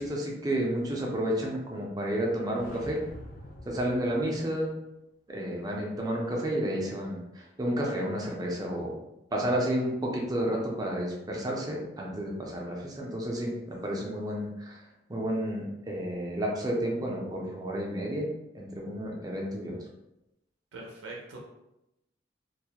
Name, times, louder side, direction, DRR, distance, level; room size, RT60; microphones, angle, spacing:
voice 1, 0.0-3.0 3.7-4.7 5.3-9.0 9.3-14.8 15.1-18.3 18.5-19.8, right 1 dB, 20° right, -2 dB, 0.4 m, -31 dB
sound 1, 2.5-4.7, left 1 dB, 45° left, 0.5 m, -47 dB
voice 2, 20.7-21.4, right 2 dB, 80° right, -1 dB, 0.5 m, -42 dB
2.3 x 2.0 x 2.7 m, 0.89 s
head